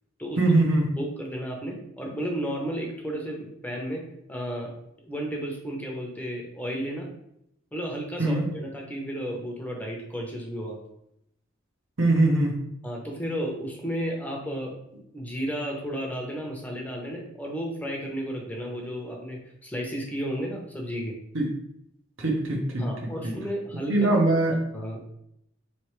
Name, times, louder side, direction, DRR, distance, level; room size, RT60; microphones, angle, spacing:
voice 1, 0.4-0.9 8.2-8.4 12.0-12.6 21.3-21.5 22.2-22.8 23.2-23.3 23.9-24.6, right 2 dB, 75° right, 1 dB, 0.9 m, -22 dB
voice 2, 1.0-4.0 4.3-4.7 5.0-7.1 7.7-10.8 12.8-14.7 15.1-21.2 22.8-24.2 24.7-25.0, equal, 10° left, -1 dB, 0.6 m, -33 dB
4.2 x 3.2 x 3.1 m, 0.76 s
head